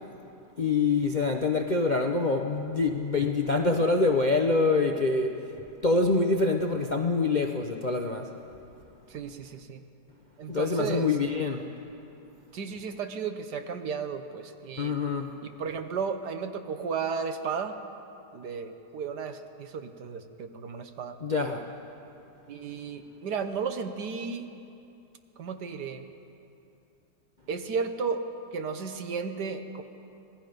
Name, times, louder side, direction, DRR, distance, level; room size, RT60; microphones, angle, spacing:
voice 1, 0.6-5.3 5.8-8.3 10.5-11.7 14.8-15.3 21.2-21.6, left 3 dB, 40° left, 3 dB, 0.7 m, -25 dB
voice 2, 9.1-9.8 10.4-11.1 12.5-14.9 15.4-17.8 18.3-21.2 22.5-24.5 25.4-26.0 27.5-28.2 28.5-29.8, right 5 dB, 65° right, 7 dB, 1.6 m, -34 dB
26.5 x 19.0 x 5.2 m, 2.7 s
omnidirectional pair, 2.0 m